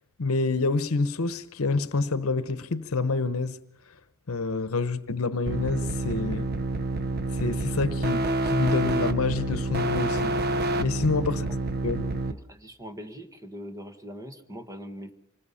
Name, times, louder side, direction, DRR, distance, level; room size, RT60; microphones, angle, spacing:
voice 1, 0.2-3.6 4.3-6.5 7.3-10.3 10.8-11.5 11.8-12.1, left 3 dB, 70° left, 0.9 m, -27 dB
sound 1, 5.5-12.3, right 2 dB, 45° right, 0.9 m, -28 dB
voice 2, 11.9-15.1, equal, 15° right, 1.5 m, -42 dB
25.5 x 20.0 x 5.6 m
head